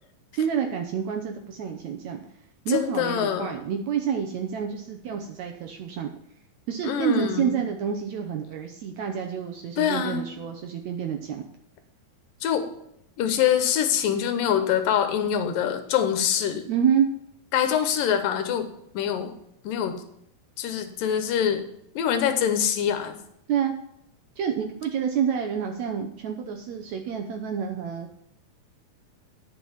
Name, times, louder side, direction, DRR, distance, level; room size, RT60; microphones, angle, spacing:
voice 1, 0.3-2.2 2.6-6.1 6.7-11.4 16.6-17.1 23.5-23.7 24.4-28.1, right 8 dB, 80° right, 4 dB, 1.6 m, -28 dB
voice 2, 2.7-3.5 6.8-7.6 9.8-10.3 12.4-12.7 13.2-16.7 17.5-18.7 18.9-19.3 19.6-20.0 20.6-21.7 22.0-23.2, left 9 dB, 75° left, 9 dB, 2.4 m, -24 dB
9.9 x 6.0 x 7.1 m, 0.76 s
omnidirectional pair, 4.3 m